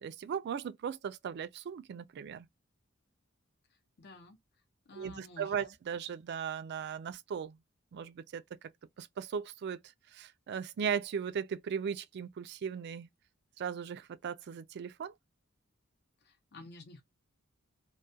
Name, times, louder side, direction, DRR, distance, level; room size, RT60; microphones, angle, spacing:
voice 1, 0.0-2.5 4.9-7.6 7.9-8.7 9.0-9.8 10.1-13.1 13.6-15.1, right 7 dB, 50° right, 0.3 m, -37 dB
voice 2, 4.0-4.4 4.9-5.7 16.2-17.0, left 3 dB, 50° left, 0.6 m, -52 dB
2.3 x 2.2 x 2.5 m
head